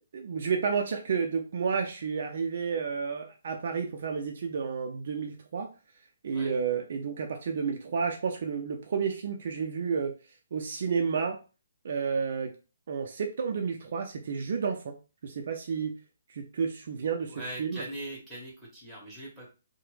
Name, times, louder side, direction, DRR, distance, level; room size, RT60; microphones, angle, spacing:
voice 1, 0.1-5.7 6.2-10.1 10.5-11.4 11.8-12.6 12.9-15.0 15.2-16.0 16.3-17.8, right 6 dB, 60° right, 3 dB, 0.4 m, -31 dB
voice 2, 17.3-19.5, right 1 dB, 5° right, -3 dB, 1.6 m, -41 dB
2.9 x 2.1 x 3.2 m, 0.32 s
hypercardioid pair, 145°, 0 cm